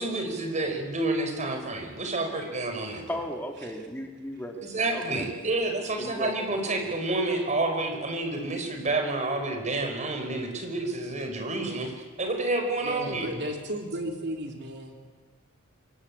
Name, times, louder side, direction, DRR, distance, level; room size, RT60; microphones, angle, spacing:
voice 1, 0.0-3.0 4.6-11.9 12.2-13.3, right 2 dB, 35° right, 4 dB, 5.2 m, -29 dB
voice 2, 3.1-4.6 4.9-5.3 6.0-6.3 6.7-6.8, left 1 dB, 10° left, 2 dB, 2.4 m, -36 dB
voice 3, 12.8-15.0, equal, 55° right, 3 dB, 3.6 m, -34 dB
26.5 x 24.0 x 8.7 m, 1.5 s
head